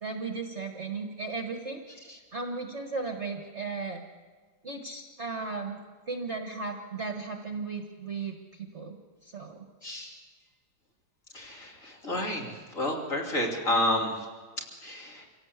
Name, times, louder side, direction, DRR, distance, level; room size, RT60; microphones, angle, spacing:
voice 1, 0.0-4.0 4.6-5.8 6.1-9.0 9.2-9.7, right 4 dB, 35° right, 4 dB, 1.6 m, -36 dB
voice 2, 9.8-10.2 11.3-14.3 14.8-15.3, left 1 dB, 35° left, -1 dB, 3.5 m, -30 dB
25.5 x 17.0 x 8.2 m, 1.5 s
omnidirectional pair, 2.3 m